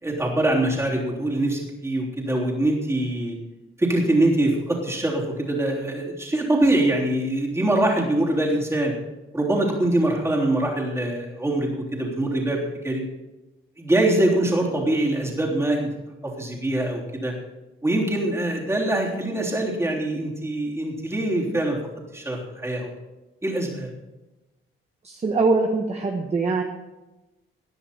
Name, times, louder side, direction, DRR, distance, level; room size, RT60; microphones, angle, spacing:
voice 1, 0.0-3.4 3.8-8.9 9.3-13.0 13.8-15.9 16.4-17.3 17.8-21.8 22.1-22.9 23.4-23.9, right 1 dB, 10° right, -3 dB, 3.4 m, -23 dB
voice 2, 25.0-26.6, right 3 dB, 30° right, 2 dB, 1.3 m, -22 dB
18.5 x 11.0 x 4.4 m, 1.1 s
cardioid pair, 145°, 21 cm